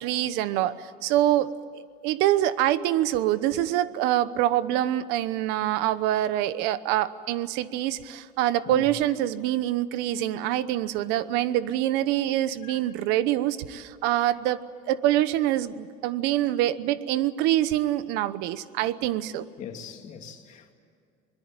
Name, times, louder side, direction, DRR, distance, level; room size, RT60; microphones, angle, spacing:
voice 1, 0.0-14.6 14.9-19.4, right 13 dB, 75° right, 1.0 m, -25 dB
voice 2, 19.6-20.7, left 8 dB, 45° left, 2.6 m, -41 dB
23.5 x 21.0 x 8.9 m
cardioid pair, 150°, 17 cm